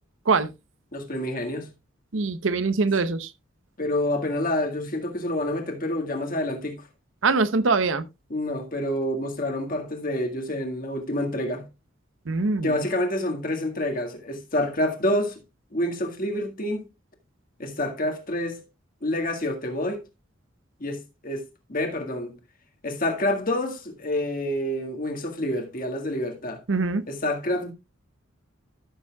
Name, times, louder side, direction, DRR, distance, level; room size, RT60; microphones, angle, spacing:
voice 1, 0.9-1.7 3.8-6.8 8.3-11.7 12.6-15.4 15.7-16.9 17.6-18.6 19.0-20.0 20.8-21.4 21.7-22.4 22.8-26.6 27.1-27.7, left 1 dB, 45° left, 1.8 m, -28 dB
voice 2, 2.1-3.3 7.2-8.0 12.3-12.9 26.7-27.0, right 4 dB, 80° right, 0.8 m, -23 dB
14.0 x 7.1 x 2.3 m
head